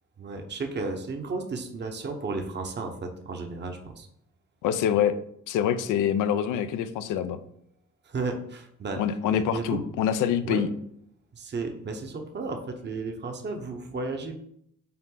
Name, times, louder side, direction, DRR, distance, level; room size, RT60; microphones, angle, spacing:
voice 1, 0.2-4.1 8.0-9.0 9.3-9.8 10.4-10.7 11.3-14.4, right 3 dB, 35° right, 4 dB, 0.9 m, -33 dB
voice 2, 4.6-5.2 5.5-7.4 9.0-10.7, left 9 dB, 85° left, 11 dB, 0.6 m, -25 dB
5.7 x 4.3 x 3.9 m, 0.71 s
cardioid pair, 90°, 30 cm